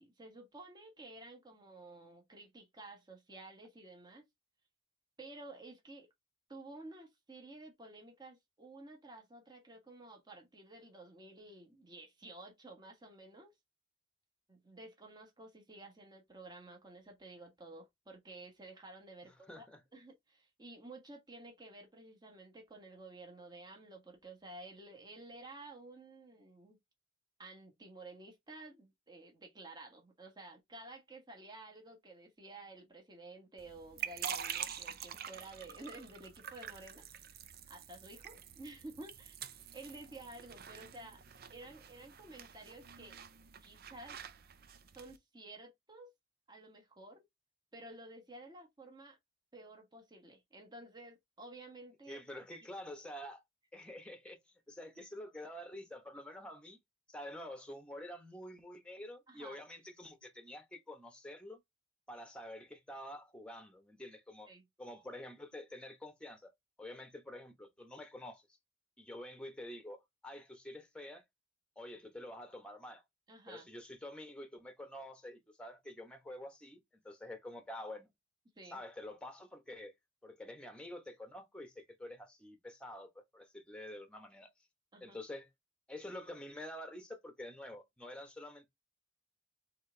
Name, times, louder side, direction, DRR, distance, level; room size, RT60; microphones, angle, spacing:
voice 1, 0.0-4.2 5.2-6.1 6.5-13.5 14.5-19.6 19.9-26.8 27.4-37.4 37.7-39.4 39.7-41.2 41.5-43.2 43.6-44.2 44.9-46.1 46.5-47.2 47.7-49.2 49.5-52.4 59.3-59.6 64.5-64.6 73.3-73.7 78.5-78.8 84.9-85.2, right 2 dB, 20° right, 1.4 m, -52 dB
voice 2, 19.5-19.8 52.1-53.4 53.7-54.4 54.7-56.8 57.1-61.6 62.1-64.5 64.8-66.5 66.8-68.5 69.0-71.2 71.8-73.0 73.5-76.8 77.0-78.1 78.7-79.9 80.2-84.5 85.0-85.5 85.9-88.7, left 1 dB, 5° left, 1.1 m, -48 dB
sound 1, 33.6-45.2, right 8 dB, 50° right, 0.6 m, -46 dB
4.4 x 3.6 x 3.3 m
head